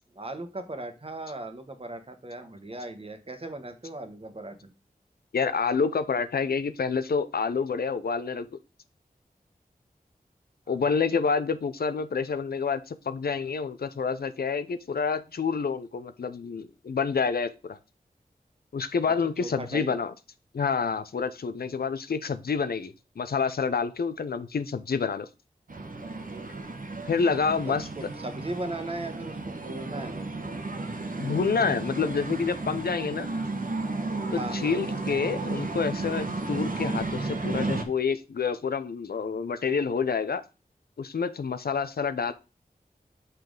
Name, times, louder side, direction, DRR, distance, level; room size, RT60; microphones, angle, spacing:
voice 1, 0.1-4.7 10.7-10.8 19.4-19.9 27.4-30.5 34.3-34.8, right 2 dB, 40° right, 7 dB, 1.2 m, -38 dB
voice 2, 5.3-8.5 10.7-17.8 18.7-20.1 20.5-25.3 27.0-27.9 31.2-33.3 34.3-40.4 41.0-42.3, left 5 dB, 85° left, 11 dB, 0.6 m, -28 dB
sound 1, 25.7-37.8, right 3 dB, 65° right, 1.2 m, -33 dB
5.6 x 5.2 x 3.8 m, 0.29 s
wide cardioid pair, 80°, 16 cm